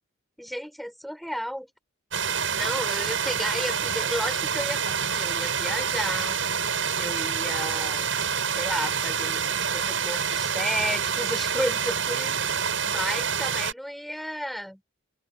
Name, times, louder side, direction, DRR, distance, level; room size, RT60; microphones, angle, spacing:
voice 1, 0.4-1.7 2.5-6.4 7.0-8.0 8.5-14.8, equal, ahead, 5.9 m, -33 dB
sound 1, 2.1-13.7, right 7 dB, 80° right, 8.0 m, -27 dB
open air
head